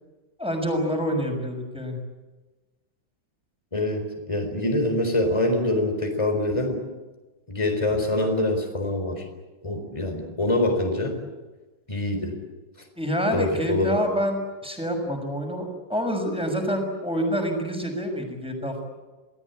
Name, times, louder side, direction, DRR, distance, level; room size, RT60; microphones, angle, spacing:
voice 1, 0.4-2.0 13.0-18.8, equal, 5° right, 3 dB, 6.2 m, -27 dB
voice 2, 3.7-6.8 7.5-9.2 9.6-11.2 11.9-12.4 13.3-14.0, left 1 dB, 15° left, 4 dB, 4.2 m, -25 dB
29.5 x 19.5 x 8.6 m, 1.2 s
omnidirectional pair, 2.1 m